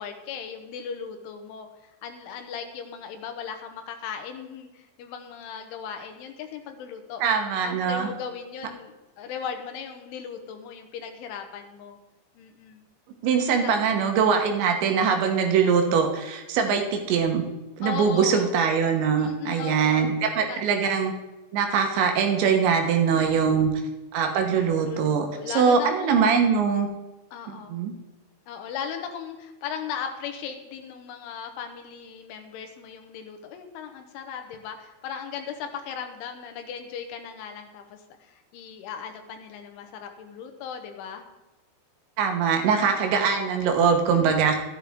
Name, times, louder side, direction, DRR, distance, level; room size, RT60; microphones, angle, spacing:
voice 1, 0.0-7.2 7.6-12.0 12.4-12.9 13.6-13.7 17.8-18.5 19.2-20.1 20.5-20.7 23.1-23.7 24.8-26.3 27.3-27.8 28.5-41.2 44.1-44.6, left 7 dB, 85° left, 5 dB, 3.6 m, -37 dB
voice 2, 7.2-8.1 13.2-17.4 17.8-21.1 21.5-23.7 24.1-25.3 25.6-26.9 27.5-27.9 42.2-44.6, right 6 dB, 75° right, 4 dB, 3.3 m, -22 dB
13.0 x 11.5 x 3.6 m, 1.1 s
omnidirectional pair, 5.4 m